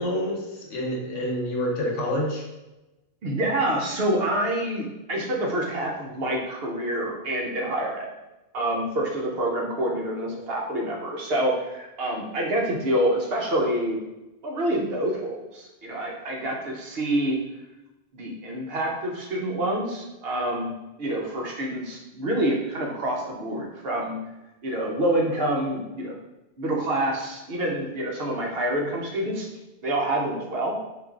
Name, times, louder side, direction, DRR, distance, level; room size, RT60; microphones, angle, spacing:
voice 1, 0.0-2.4, left 1 dB, 75° left, -2 dB, 1.2 m, -27 dB
voice 2, 3.2-8.1 8.5-14.0 14.4-17.4 18.1-20.7 21.0-24.2 24.6-26.1 26.6-29.5 29.8-30.7, right 1 dB, 60° right, -1 dB, 0.8 m, -27 dB
4.7 x 2.5 x 2.3 m, 1.0 s
omnidirectional pair, 1.3 m